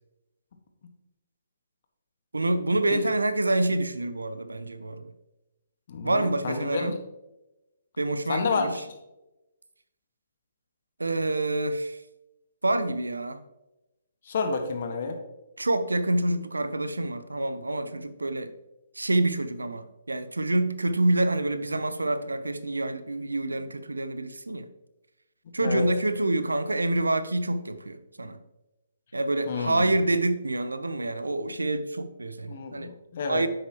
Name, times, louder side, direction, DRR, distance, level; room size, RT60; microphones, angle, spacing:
voice 1, 2.3-5.1 6.0-7.0 8.0-8.8 11.0-12.0 12.6-13.4 15.6-18.5 19.0-24.7 25.5-28.4 29.1-32.9 33.3-33.5, right 2 dB, 90° right, 12 dB, 0.7 m, -27 dB
voice 2, 5.9-6.9 8.3-8.8 14.2-15.2 25.6-25.9 29.5-29.9 32.5-33.4, left 4 dB, 55° left, 5 dB, 1.5 m, -30 dB
10.0 x 7.9 x 3.0 m, 0.97 s
figure-of-eight pair, 140°, 0 cm